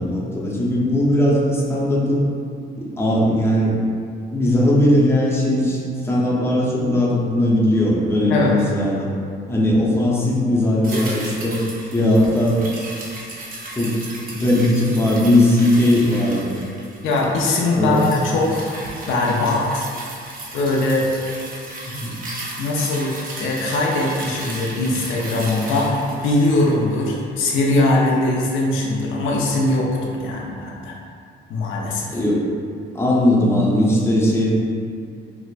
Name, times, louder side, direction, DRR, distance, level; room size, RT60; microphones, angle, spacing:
voice 1, 0.0-2.2 2.8-3.8 4.3-9.1 9.5-11.6 11.9-12.6 13.8-14.0 14.2-16.5 17.8-18.1 21.9-22.2 32.1-32.4 32.9-34.6, left 1 dB, 10° left, -6 dB, 0.7 m, -18 dB
sound 1, 10.8-27.3 27.6-27.7, right 1 dB, 45° right, 0.7 m, -35 dB
voice 2, 17.0-18.7 19.1-19.9 20.5-21.1 22.6-26.0 26.2-30.9 31.5-32.2, left 2 dB, 80° left, -3 dB, 0.6 m, -21 dB
4.6 x 2.0 x 2.4 m, 2.3 s
cardioid pair, 90°, 20 cm